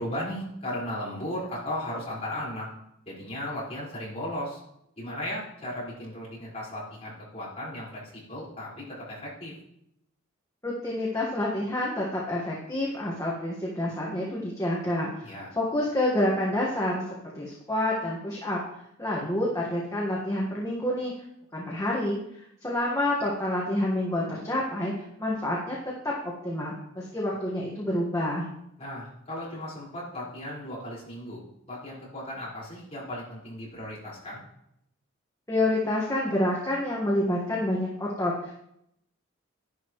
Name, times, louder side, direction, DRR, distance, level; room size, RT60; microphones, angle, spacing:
voice 1, 0.0-2.7 3.1-4.6 5.0-9.5 15.2-15.5 28.8-31.4 31.7-34.5, left 1 dB, 30° left, -7 dB, 5.0 m, -36 dB
voice 2, 10.6-17.0 17.3-18.6 19.0-21.1 21.5-25.8 26.0-26.1 26.4-28.4 35.5-38.5, left 1 dB, 15° left, -4 dB, 1.6 m, -28 dB
11.5 x 11.0 x 3.2 m, 0.78 s
head